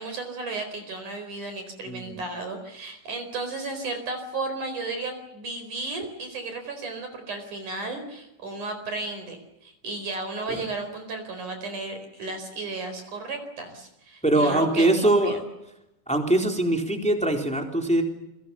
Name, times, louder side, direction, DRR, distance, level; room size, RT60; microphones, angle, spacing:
voice 1, 0.0-15.4, right 3 dB, 40° right, 7 dB, 5.5 m, -34 dB
voice 2, 1.9-2.2 10.5-10.6 14.2-15.4 16.1-18.0, right 1 dB, ahead, 3 dB, 2.8 m, -22 dB
29.0 x 23.5 x 7.1 m, 0.87 s
omnidirectional pair, 5.4 m